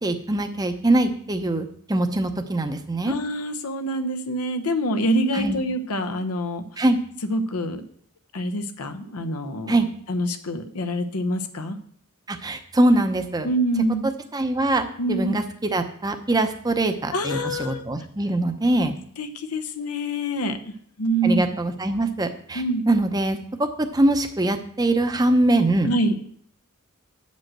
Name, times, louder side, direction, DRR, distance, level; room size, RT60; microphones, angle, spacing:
voice 1, 0.0-3.1 5.3-5.6 6.8-7.0 9.7-9.9 12.3-13.5 14.0-18.9 21.2-25.9, right 1 dB, 15° right, 7 dB, 0.7 m, -23 dB
voice 2, 3.0-6.6 7.3-7.8 8.3-9.8 10.1-11.8 13.4-14.0 15.0-15.4 17.1-17.8 19.2-21.5 22.5-22.8 25.8-26.2, right 1 dB, 85° left, 7 dB, 0.8 m, -26 dB
7.6 x 5.3 x 7.5 m, 0.63 s
head